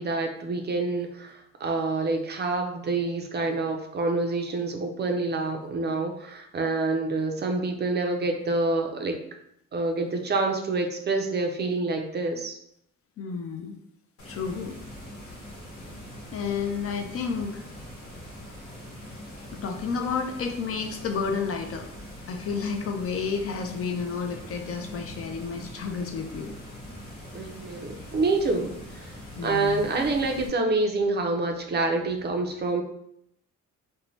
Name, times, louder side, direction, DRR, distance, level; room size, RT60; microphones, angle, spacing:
voice 1, 0.0-9.2 9.7-12.6 27.3-29.1 29.4-32.8, right 3 dB, 35° right, 4 dB, 0.4 m, -27 dB
voice 2, 13.2-13.7 14.3-14.8 16.3-17.7 19.5-21.9 22.3-26.5 29.4-29.9, left 5 dB, 50° left, 5 dB, 0.4 m, -31 dB
sound 1, 14.2-30.5, equal, 75° left, 1.1 m, -42 dB
2.7 x 2.1 x 3.0 m, 0.74 s
cardioid pair, 90°, 30 cm